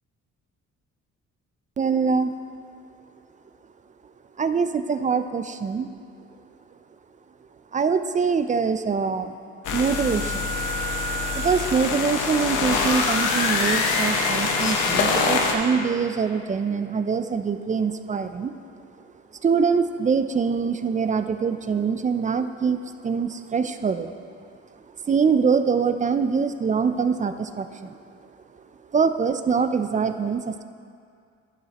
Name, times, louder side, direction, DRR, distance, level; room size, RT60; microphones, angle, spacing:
voice 1, 1.8-2.3 4.4-5.9 7.7-9.4 9.7-10.5 11.3-18.5 19.4-24.2 25.1-28.0 28.9-30.6, right 5 dB, 25° right, 9 dB, 0.3 m, -24 dB
sound 1, 9.6-15.5, left 4 dB, 85° left, 0.9 m, -24 dB
11.0 x 7.0 x 2.9 m, 2.3 s
cardioid pair, 90°, 30 cm